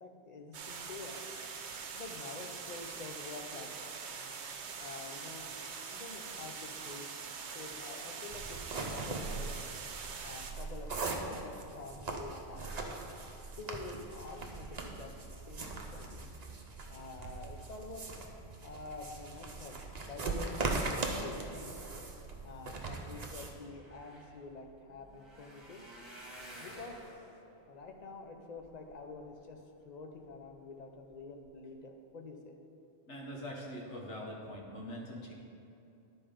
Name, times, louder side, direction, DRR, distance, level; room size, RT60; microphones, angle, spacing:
voice 1, 0.0-1.2 1.8-3.9 4.8-5.4 5.9-7.1 7.5-9.6 10.2-10.9 11.3-13.0 13.6-15.1 15.5-16.3 16.9-18.0 18.6-20.6 20.9-21.8 22.4-25.8 26.6-27.0 27.7-29.6 29.8-32.6, left 3 dB, 45° left, 3 dB, 0.7 m, -48 dB
sound 1, 0.5-10.5, right 5 dB, 80° right, 1.0 m, -43 dB
sound 2, 8.3-23.5, right 3 dB, 40° right, 0.8 m, -40 dB
sound 3, 23.4-29.5 30.1-30.5 30.9-31.1 31.4-31.5, right 1 dB, 25° right, 1.4 m, -53 dB
voice 2, 33.1-35.3, equal, 90° left, -2 dB, 1.6 m, -43 dB
11.0 x 4.3 x 5.1 m, 2.7 s
omnidirectional pair, 1.1 m